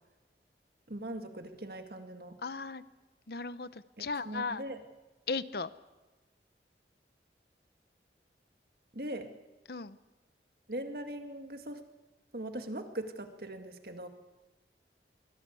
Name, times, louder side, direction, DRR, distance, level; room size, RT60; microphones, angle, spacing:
voice 1, 0.9-2.4 4.0-4.8 8.9-9.3 10.7-11.8 12.3-14.1, right 1 dB, 55° right, 6 dB, 2.0 m, -40 dB
voice 2, 2.4-2.8 3.3-4.6 5.3-5.7 9.7-10.0, left 4 dB, 60° left, 15 dB, 0.8 m, -36 dB
23.5 x 17.5 x 8.4 m, 1.2 s
head